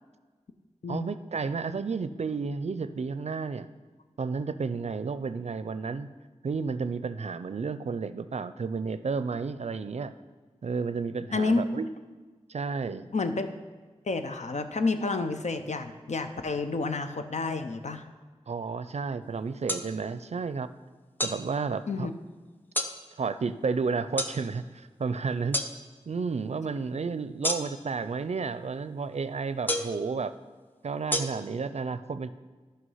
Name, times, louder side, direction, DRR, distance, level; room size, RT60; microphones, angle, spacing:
voice 1, 0.9-3.7 4.2-6.1 6.4-10.1 10.6-11.9 12.5-13.1 18.5-20.7 21.2-22.1 23.2-25.6 26.1-30.3 30.8-32.3, right 4 dB, 65° right, 13 dB, 0.4 m, -32 dB
voice 2, 11.3-11.6 13.1-13.5 14.1-18.0 21.9-22.1, left 3 dB, 75° left, 8 dB, 0.7 m, -29 dB
sound 1, 19.7-19.8 21.2-21.4 22.7-22.9 24.2-24.3 25.5-25.7 27.4-27.9 29.7-30.0 31.1-31.2, left 1 dB, 15° left, 0.8 m, -28 dB
11.5 x 5.7 x 5.6 m, 1.4 s
wide cardioid pair, 60°, 12 cm